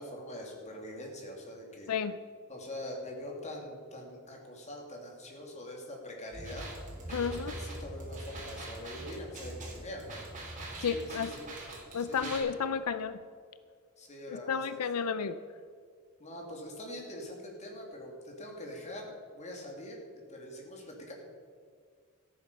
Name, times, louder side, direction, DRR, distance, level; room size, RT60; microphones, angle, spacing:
voice 1, 0.0-1.9 2.5-6.7 7.1-10.2 10.8-11.5 12.0-12.4 14.0-14.7 15.0-15.1 16.2-21.1, left 1 dB, 30° left, 0 dB, 2.6 m, -44 dB
voice 2, 1.9-2.2 7.1-7.5 10.8-11.3 11.9-13.2 14.3-15.4, left 6 dB, 90° left, 13 dB, 0.5 m, -32 dB
sound 1, 6.3-13.0, equal, 5° left, 3.1 m, -45 dB
sound 2, 6.4-12.4, right 3 dB, 35° right, 3.7 m, -45 dB
14.0 x 9.0 x 6.8 m, 2.1 s
head